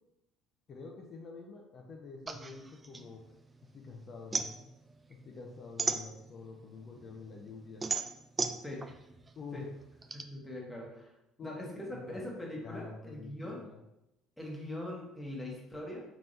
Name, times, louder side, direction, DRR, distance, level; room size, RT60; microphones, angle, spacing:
voice 1, 0.7-3.2 3.6-4.7 5.1-7.9 9.4-9.7 11.4-11.6 11.9-12.2 12.6-13.8, left 4 dB, 45° left, 0 dB, 0.5 m, -47 dB
sound 1, 2.3-3.8 4.1-6.6 7.1-10.2, right 4 dB, 25° right, 0.3 m, -36 dB
voice 2, 10.1-11.1 11.4-13.6 14.4-16.0, left 1 dB, 10° left, -2 dB, 1.2 m, -41 dB
3.4 x 3.0 x 2.6 m, 0.87 s
hypercardioid pair, 70°, 0 cm